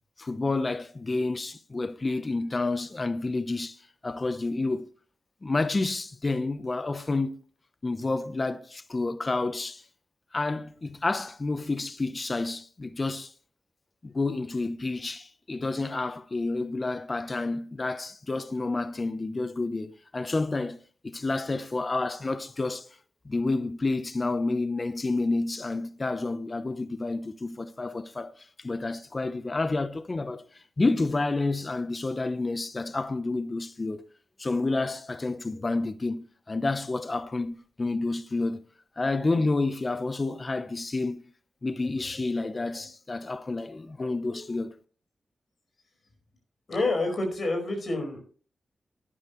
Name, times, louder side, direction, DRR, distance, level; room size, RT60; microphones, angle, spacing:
voice 1, 0.2-4.9 5.4-7.3 7.8-9.8 10.3-13.3 14.0-20.8 21.0-22.9 23.2-34.0 34.4-38.6 39.0-41.3 41.6-44.7, left 3 dB, 35° left, 0.8 m, -29 dB
voice 2, 46.7-48.2, left 2 dB, 60° left, 4.8 m, -28 dB
11.0 x 10.0 x 3.1 m
cardioid pair, 60°, 0 cm